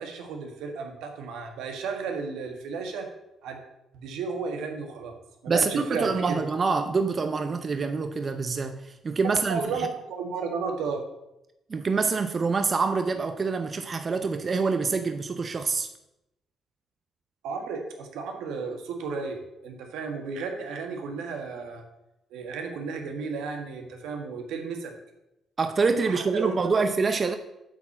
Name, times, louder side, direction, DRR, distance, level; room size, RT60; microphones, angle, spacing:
voice 1, 0.0-3.1 3.4-3.6 3.9-5.1 5.4-6.4 9.5-11.0 17.4-21.8 22.3-24.9 26.0-26.8, right 5 dB, 90° right, 1.6 m, -33 dB
voice 2, 5.5-9.9 11.7-15.9 25.6-27.4, right 4 dB, 40° right, 0.7 m, -26 dB
8.1 x 4.4 x 7.2 m
cardioid pair, 90°, 0 cm